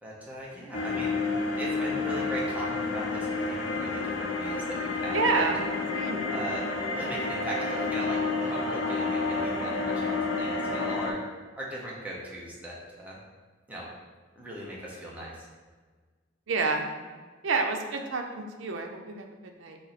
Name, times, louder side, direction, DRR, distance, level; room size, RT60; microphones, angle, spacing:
voice 1, 0.0-1.1 1.5-5.5 6.3-11.2 11.6-13.2 13.7-13.8 14.4-15.5, right 1 dB, 10° right, -5 dB, 0.8 m, -38 dB
sound 1, 0.7-11.1, left 3 dB, 75° left, 0.6 m, -30 dB
voice 2, 5.1-5.6 5.9-6.2 16.5-16.9 17.4-19.8, right 4 dB, 80° right, 4 dB, 0.5 m, -29 dB
4.4 x 2.7 x 4.1 m, 1.4 s
head